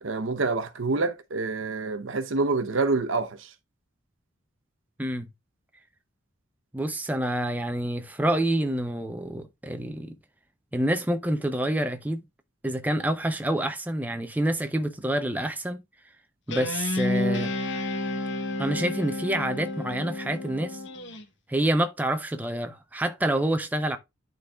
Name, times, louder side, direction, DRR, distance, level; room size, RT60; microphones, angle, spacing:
voice 1, 0.0-3.5, right 3 dB, 75° right, 0.8 m, -27 dB
voice 2, 6.7-10.2 10.7-12.2 12.6-15.8 16.5-17.5 18.6-20.8 21.5-24.0, right 1 dB, 10° right, 0.5 m, -27 dB
Guitar, 16.5-21.2, left 2 dB, 60° left, 1.0 m, -30 dB
11.5 x 3.9 x 2.3 m
head